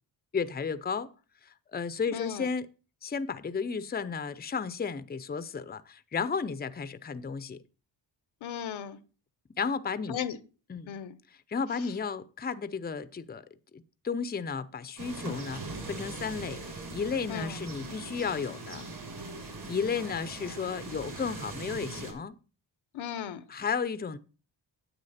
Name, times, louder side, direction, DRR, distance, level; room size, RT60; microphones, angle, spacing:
voice 1, 0.3-1.1 1.4-2.7 3.0-7.6 9.5-10.2 10.7-11.0 11.5-13.4 13.7-18.8 19.7-22.3 23.5-24.2, left 5 dB, 20° left, 0.6 m, -33 dB
voice 2, 2.1-2.5 8.4-9.0 10.1-10.4 10.9-11.1 17.3-17.6 22.9-23.4, left 9 dB, 80° left, 0.9 m, -36 dB
sound 1, 15.0-22.1, right 2 dB, 55° right, 5.4 m, -41 dB
9.8 x 8.1 x 4.2 m
cardioid pair, 80°, 47 cm